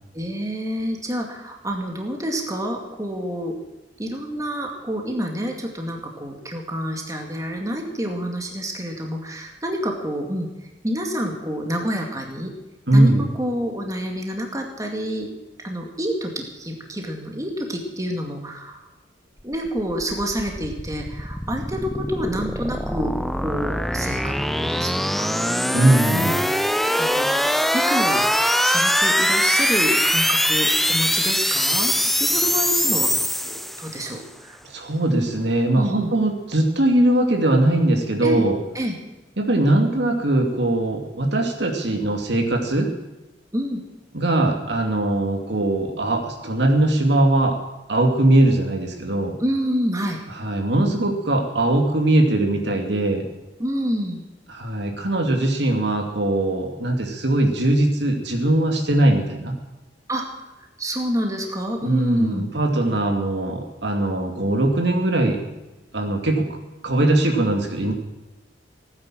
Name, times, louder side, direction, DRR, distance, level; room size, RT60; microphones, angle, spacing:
voice 1, 0.1-3.5 4.0-10.5 10.8-12.5 12.9-15.3 15.6-18.8 19.4-25.8 26.1-26.5 27.0-28.3 28.6-33.1 33.5-34.6 35.7-36.1 38.2-38.4 38.7-39.0 43.5-43.8 49.4-50.2 53.6-54.2 60.1-60.2 60.8-62.5, equal, 20° right, 2 dB, 2.3 m, -28 dB
voice 2, 12.9-13.3 25.7-26.4 34.7-38.6 39.4-42.9 44.1-47.6 47.9-49.3 50.3-53.2 54.5-59.5 61.8-65.4 65.9-66.5 66.8-67.9, right 1 dB, 65° right, 2 dB, 2.6 m, -20 dB
sound 1, 19.5-34.1, equal, ahead, 0.5 m, -22 dB
17.5 x 9.8 x 7.6 m, 1.0 s
head